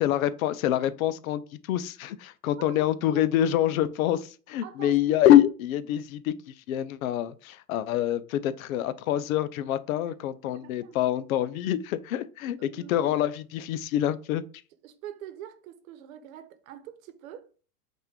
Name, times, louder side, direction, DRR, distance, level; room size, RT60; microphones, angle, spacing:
voice 1, 0.0-14.4, left 12 dB, 65° left, 0.6 m, -25 dB
voice 2, 2.5-3.2 4.6-5.0 10.0-11.0 12.6-13.2 14.8-17.5, right 10 dB, 60° right, 1.0 m, -45 dB
5.5 x 2.5 x 3.6 m
hypercardioid pair, 95°, 46 cm